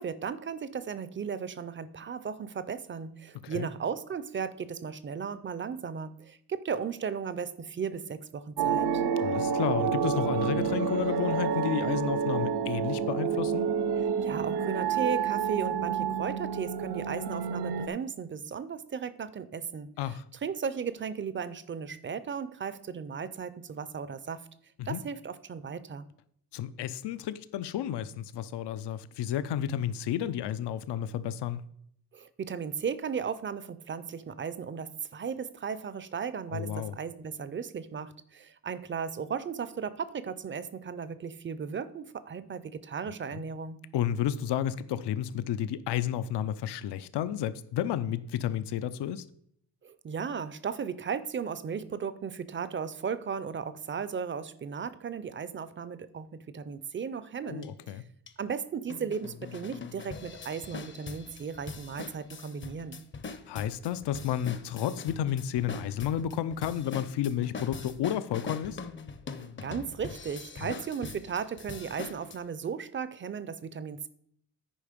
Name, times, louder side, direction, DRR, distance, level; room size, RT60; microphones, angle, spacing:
voice 1, 0.0-9.0 14.0-20.2 20.4-24.5 24.9-26.1 32.1-43.8 49.8-58.0 58.4-63.0 69.3-74.1, right 6 dB, 30° right, 0.4 m, -36 dB
sound 1, 8.6-17.9, right 6 dB, 75° right, 0.6 m, -29 dB
voice 2, 9.2-13.7 20.0-20.2 24.8-25.0 26.5-31.6 36.5-37.0 43.9-49.2 57.4-58.0 63.5-68.8 70.6-70.7, left 10 dB, 90° left, 0.5 m, -31 dB
sound 2, 57.6-57.7 58.3-58.4 58.9-72.4, left 4 dB, 30° left, 0.5 m, -42 dB
10.0 x 4.9 x 5.1 m
wide cardioid pair, 155°, 40 cm